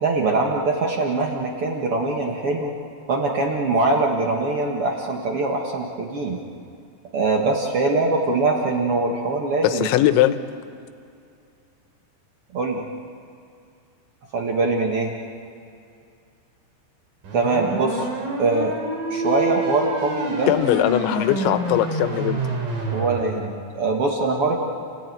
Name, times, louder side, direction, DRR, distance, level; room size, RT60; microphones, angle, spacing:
voice 1, 0.0-2.7 3.1-6.4 7.1-9.9 12.5-12.8 14.3-15.1 17.3-18.1 18.4-18.7 19.1-20.5 22.9-24.6, right 3 dB, 90° right, 0 dB, 1.2 m, -22 dB
voice 2, 9.6-10.4 20.5-22.4, left 13 dB, 85° left, 10 dB, 3.2 m, -20 dB
sound 1, 17.2-23.2, right 2 dB, 55° right, 4.5 m, -28 dB
29.5 x 16.5 x 9.3 m, 2.5 s
omnidirectional pair, 5.3 m